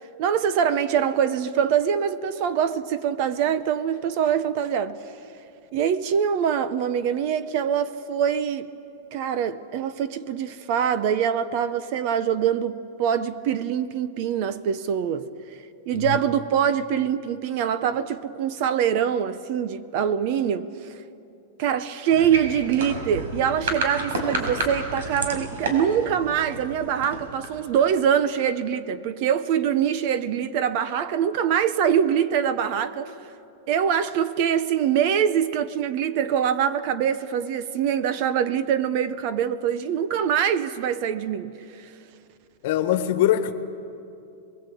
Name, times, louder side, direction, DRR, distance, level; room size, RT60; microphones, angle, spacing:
voice 1, 0.2-5.0 5.7-8.7 9.1-15.3 15.9-20.7 21.6-33.1 33.7-41.5, right 8 dB, 35° right, 0.7 m, -24 dB
sound 1, 22.1-27.9, right 2 dB, 85° right, 5.6 m, -31 dB
voice 2, 42.6-43.5, left 12 dB, 45° left, 1.4 m, -22 dB
26.5 x 22.0 x 8.4 m
supercardioid pair, 180°, 0 cm